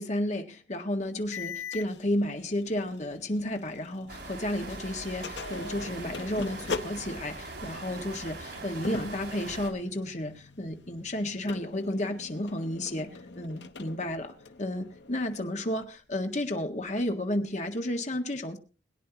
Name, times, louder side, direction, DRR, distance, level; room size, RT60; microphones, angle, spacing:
voice 1, 0.0-13.1 13.4-14.3 14.6-18.6, left 1 dB, 40° left, 5 dB, 1.8 m, -32 dB
sound 1, 1.3-4.4 4.7-15.8, left 4 dB, 80° left, 1.0 m, -43 dB
sound 2, 4.1-9.7, right 3 dB, 65° right, 3.5 m, -41 dB
22.0 x 10.0 x 2.9 m, 0.33 s
head